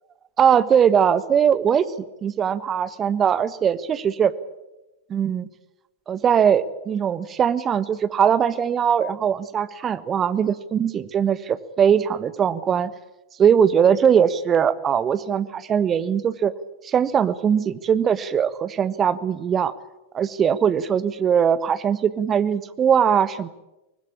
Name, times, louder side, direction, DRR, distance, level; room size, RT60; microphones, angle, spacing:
voice 1, 0.4-1.8 2.2-4.3 5.1-5.5 6.1-12.9 13.4-16.5 16.8-19.7 20.1-23.5, right 8 dB, 25° right, 14 dB, 1.3 m, -20 dB
24.5 x 20.0 x 8.8 m, 1.0 s
figure-of-eight pair, 90°, 0 cm